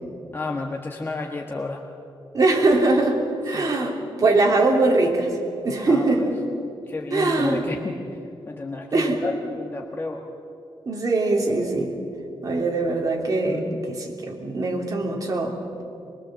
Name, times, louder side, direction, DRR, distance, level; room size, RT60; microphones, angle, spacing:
voice 1, 0.3-1.8 3.5-3.9 5.9-6.3 6.9-7.9 8.5-10.2 13.5-13.8, left 3 dB, 25° left, 2 dB, 1.3 m, -31 dB
voice 2, 2.3-5.4 5.6-6.4 7.1-7.6 8.9-9.2 10.8-12.0 12.4-15.6, right 2 dB, 40° right, 0 dB, 3.2 m, -22 dB
23.5 x 22.5 x 7.6 m, 2.7 s
wide cardioid pair, 155°, 9 cm